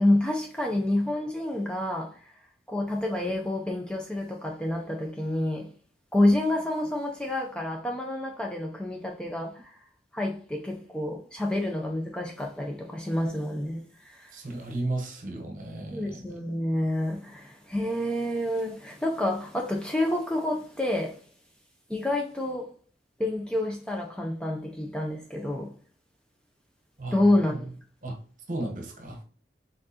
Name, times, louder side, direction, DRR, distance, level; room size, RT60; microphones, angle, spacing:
voice 1, 0.0-2.3 2.7-5.7 6.1-9.8 10.1-14.3 15.9-21.2 21.9-22.7 23.2-25.7 27.1-27.7, left 1 dB, 5° left, 0.4 m, -28 dB
voice 2, 14.3-16.3 27.0-27.8 28.0-28.2 28.5-29.2, right 2 dB, 45° right, 0.9 m, -34 dB
4.4 x 3.7 x 2.8 m
head